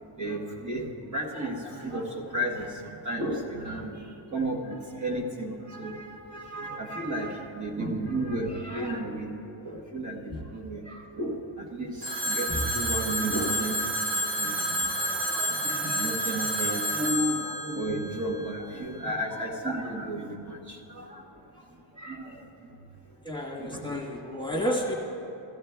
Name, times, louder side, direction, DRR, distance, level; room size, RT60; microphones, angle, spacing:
voice 1, 0.2-2.7 3.0-3.9 4.3-9.3 9.6-11.9 12.2-13.8 14.4-21.1 22.0-22.3 23.6-23.8 24.9-25.0, right 1 dB, 35° right, -3 dB, 1.3 m, -33 dB
Telephone, 12.0-18.8, equal, 65° right, 2.5 m, -30 dB
voice 2, 23.2-24.9, equal, 10° left, -4 dB, 1.3 m, -31 dB
16.0 x 14.5 x 2.3 m, 2.8 s
wide cardioid pair, 145°, 49 cm